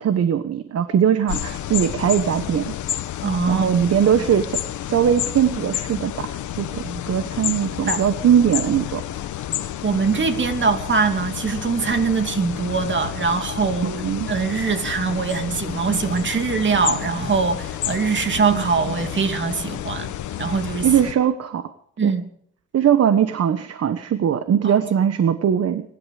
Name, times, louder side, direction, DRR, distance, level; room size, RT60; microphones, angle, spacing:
voice 1, 0.0-2.7 3.5-4.6 4.9-9.0 13.8-14.3 20.8-21.6 22.0-22.1 22.7-25.8, right 9 dB, 55° right, 1.2 m, -20 dB
sound 1, 1.3-21.1, left 11 dB, 75° left, 1.3 m, -30 dB
voice 2, 3.2-3.7 6.8-7.0 7.9-8.0 9.8-14.0 14.3-20.1 20.4-20.9 22.0-22.3 24.6-25.1, right 5 dB, 40° right, 2.7 m, -22 dB
23.5 x 12.0 x 5.0 m
cardioid pair, 90°, 30 cm